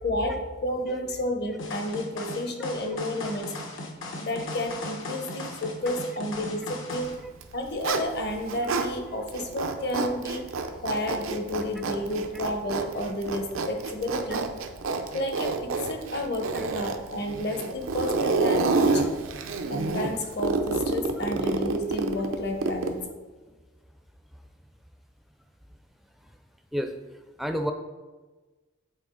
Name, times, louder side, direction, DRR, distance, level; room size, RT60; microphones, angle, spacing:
voice 1, 0.0-3.6 4.2-7.1 7.5-10.4 10.8-14.5 15.1-19.1 19.7-23.1, left 1 dB, 50° left, 4 dB, 0.9 m, -31 dB
sound 1, 1.6-7.1, left 2 dB, 80° left, 1.1 m, -37 dB
Zipper (clothing), 7.3-8.9 9.3-23.0, right 3 dB, 90° right, 0.6 m, -28 dB
voice 2, 26.7-27.7, equal, ahead, 6 dB, 0.4 m, -32 dB
8.5 x 4.2 x 3.8 m, 1.3 s
head